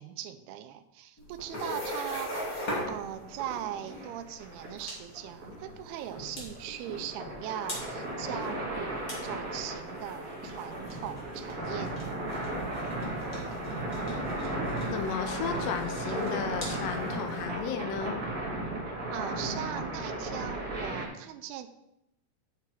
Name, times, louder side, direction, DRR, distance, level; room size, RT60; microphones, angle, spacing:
voice 1, 0.0-12.3 19.1-21.7, right 11 dB, 80° right, 9 dB, 2.4 m, -40 dB
sound 1, 1.2-17.4, equal, 30° left, 1.7 m, -42 dB
sound 2, 2.7-21.1, right 1 dB, 40° right, 1.3 m, -36 dB
voice 2, 14.9-18.2, left 7 dB, 80° left, 7 dB, 2.7 m, -34 dB
9.6 x 5.9 x 4.6 m, 0.84 s
omnidirectional pair, 4.9 m